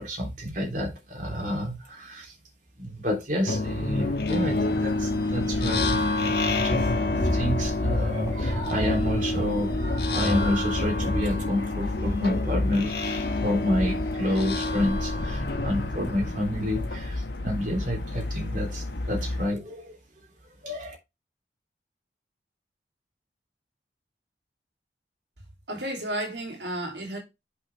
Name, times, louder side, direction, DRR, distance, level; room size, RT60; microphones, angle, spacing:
voice 1, 0.0-2.3 2.8-6.8 7.1-20.0 20.6-21.0, left 1 dB, 45° right, 3.1 m, -29 dB
sound 1, 3.5-17.1, left 2 dB, 60° left, 1.5 m, -27 dB
sound 2, 3.6-19.5, left 2 dB, 80° left, 1.5 m, -35 dB
sound 3, 8.2-9.8 10.1-12.9, equal, 20° right, 3.8 m, -41 dB
voice 2, 25.7-27.2, right 1 dB, 75° right, 3.1 m, -32 dB
8.2 x 6.0 x 3.4 m
head